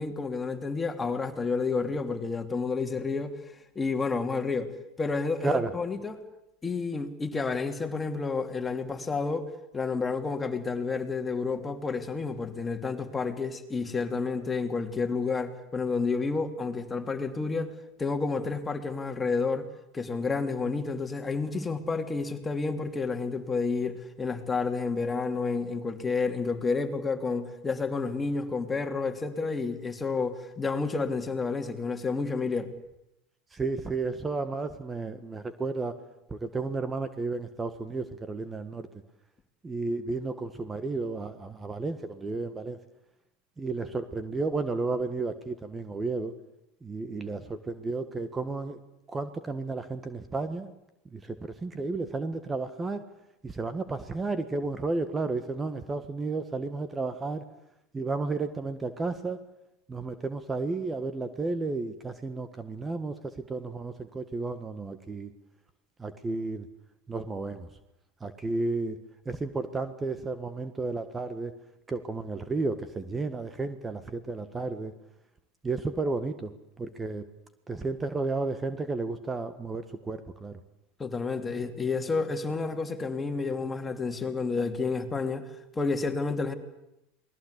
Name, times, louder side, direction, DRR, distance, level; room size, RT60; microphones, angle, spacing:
voice 1, 0.0-3.3 3.7-4.7 5.0-6.2 6.6-17.7 18.0-19.7 19.9-32.7 81.0-85.4 85.7-86.5, left 4 dB, 20° left, 6 dB, 2.9 m, -30 dB
voice 2, 33.5-36.0 36.3-38.9 39.6-42.8 43.6-46.3 46.8-48.8 49.1-50.7 51.1-53.0 53.4-57.4 57.9-59.4 59.9-65.3 66.0-66.7 67.1-67.7 68.2-69.0 69.2-71.5 71.9-74.9 75.6-77.2 77.7-80.5, right 3 dB, 20° right, 11 dB, 1.7 m, -32 dB
28.5 x 20.0 x 8.3 m, 0.87 s
hypercardioid pair, 85°, 0 cm